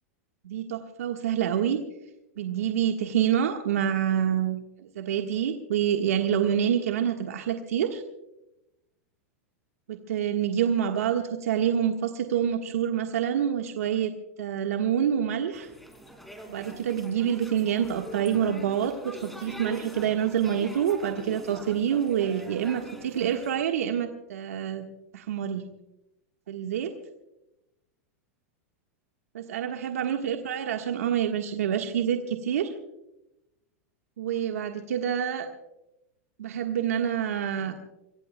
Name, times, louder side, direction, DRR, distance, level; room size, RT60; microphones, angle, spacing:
voice 1, 0.4-1.8 2.4-8.0 9.9-14.1 14.4-15.7 16.5-24.9 25.1-25.7 26.5-26.9 29.3-32.7 34.2-35.5 36.4-37.7, right 9 dB, 85° right, 4 dB, 1.4 m, -27 dB
sound 1, 15.5-23.5, right 1 dB, ahead, 3.7 m, -44 dB
26.0 x 22.5 x 2.2 m, 0.92 s
hypercardioid pair, 120°, 8 cm